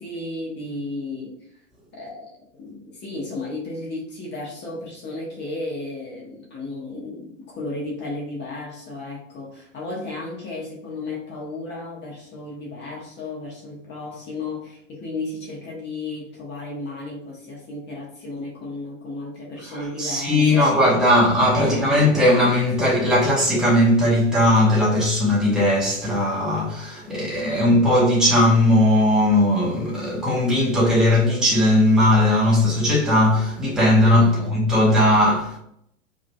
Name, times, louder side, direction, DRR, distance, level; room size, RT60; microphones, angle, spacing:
voice 1, 0.0-1.3 1.9-2.3 2.6-20.9 21.5-22.0 27.1-27.6 34.2-34.6, left 2 dB, 25° left, 1.2 m, -34 dB
voice 2, 20.0-35.6, left 1 dB, ahead, 1.0 m, -18 dB
4.9 x 2.9 x 2.2 m
figure-of-eight pair, 95°, 39 cm